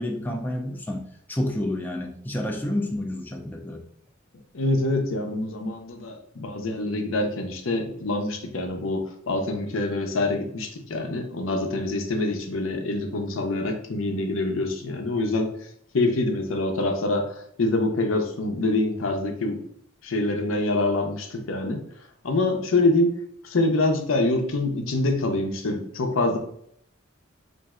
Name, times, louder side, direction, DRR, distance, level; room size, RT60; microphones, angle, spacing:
voice 1, 0.0-3.9, left 1 dB, 10° left, 1 dB, 0.3 m, -29 dB
voice 2, 4.5-15.5 15.9-19.6 20.0-21.8 22.2-23.1 23.4-26.4, left 2 dB, 80° left, 4 dB, 0.6 m, -25 dB
4.1 x 2.6 x 2.3 m, 0.66 s
head